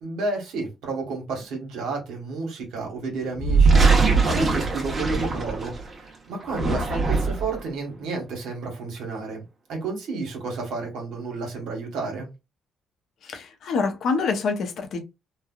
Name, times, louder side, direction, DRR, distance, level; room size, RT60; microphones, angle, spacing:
voice 1, 0.0-3.8 4.2-9.4 9.7-12.3, right 3 dB, 85° right, 1.2 m, -31 dB
sound 1, 3.3-5.9 6.4-7.6, right 4 dB, 35° right, 0.9 m, -21 dB
voice 2, 13.2-15.0, left 4 dB, 70° left, 0.6 m, -26 dB
3.2 x 2.2 x 2.3 m
cardioid pair, 90°, 0 cm